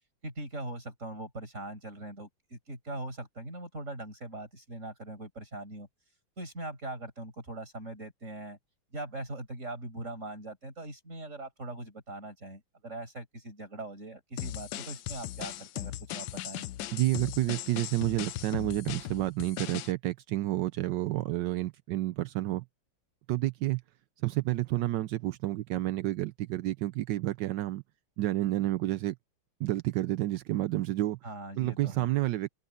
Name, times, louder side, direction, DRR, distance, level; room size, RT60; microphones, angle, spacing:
voice 1, 0.2-5.9 6.4-8.6 8.9-16.6 31.2-32.1, right 2 dB, 35° right, 5.9 m, -41 dB
sound 1, 14.4-19.9, left 14 dB, 75° left, 1.3 m, -38 dB
voice 2, 16.9-22.6 23.3-23.8 24.2-27.8 28.2-29.2 29.6-31.2 31.6-32.5, right 16 dB, 75° right, 1.1 m, -30 dB
open air
omnidirectional pair, 2.2 m